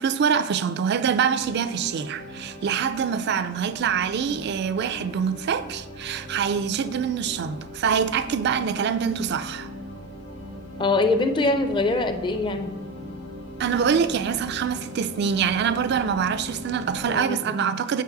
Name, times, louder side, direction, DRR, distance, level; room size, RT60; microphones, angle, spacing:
voice 1, 0.0-9.7 13.6-18.0, right 7 dB, 60° right, 0.3 m, -25 dB
sound 1, 1.4-17.2, left 1 dB, 75° left, 1.5 m, -39 dB
voice 2, 10.8-12.7 17.1-17.5, left 2 dB, 25° left, 0.5 m, -23 dB
8.2 x 4.7 x 3.9 m
head